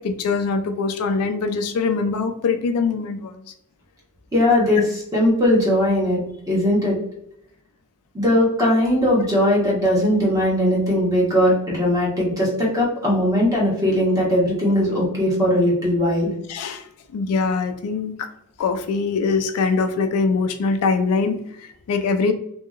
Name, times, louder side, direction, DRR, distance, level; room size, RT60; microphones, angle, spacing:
voice 1, 0.0-3.5 16.5-16.8 17.1-18.3 18.6-22.3, left 4 dB, 75° left, 8 dB, 0.4 m, -23 dB
voice 2, 4.3-6.2 6.5-7.0 8.1-16.3, left 1 dB, 15° right, -4 dB, 1.0 m, -19 dB
2.8 x 2.7 x 2.4 m, 0.74 s
head